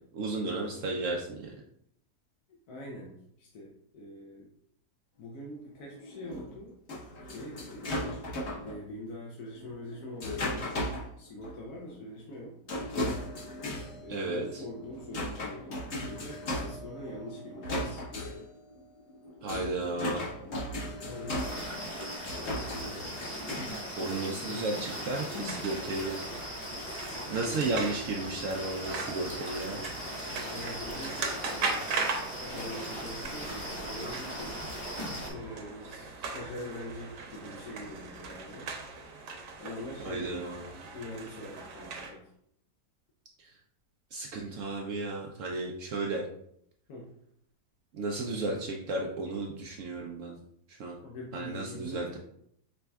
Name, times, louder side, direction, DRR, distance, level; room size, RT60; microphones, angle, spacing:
voice 1, 0.1-1.6 14.1-14.6 19.4-20.3 24.0-26.2 27.3-29.9 40.0-40.7 43.4-43.5 44.1-46.2 47.9-50.4 50.7-51.0 51.3-52.2, right 2 dB, 70° right, 0 dB, 0.7 m, -34 dB
voice 2, 2.5-4.5 5.2-6.7 7.2-7.9 8.6-10.9 11.2-12.6 14.0-18.0 21.0-23.3 24.5-24.9 25.3-25.7 27.1-27.9 30.5-31.3 31.5-34.6 35.3-38.8 39.6-40.7 40.9-42.3 46.9-47.1 51.0-52.1, left 1 dB, 70° left, -3 dB, 1.2 m, -44 dB
sound 1, 5.8-8.8 9.6-11.1 11.4-11.5 11.9-12.0 12.7-23.7, left 1 dB, 45° left, 1.1 m, -37 dB
sound 2, 21.4-35.3, equal, 20° left, 1.0 m, -39 dB
sound 3, 25.3-42.1, right 4 dB, 90° right, 1.4 m, -39 dB
5.1 x 3.3 x 2.3 m, 0.71 s
omnidirectional pair, 1.8 m